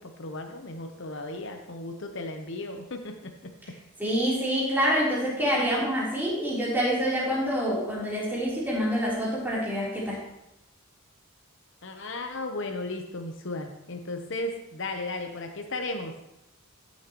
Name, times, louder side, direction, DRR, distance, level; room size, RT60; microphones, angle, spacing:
voice 1, 0.0-3.5 5.4-5.5 11.8-16.2, left 2 dB, 55° left, 4 dB, 0.9 m, -35 dB
voice 2, 4.0-10.2, equal, 10° right, -7 dB, 3.5 m, -26 dB
13.0 x 7.3 x 3.0 m, 0.86 s
head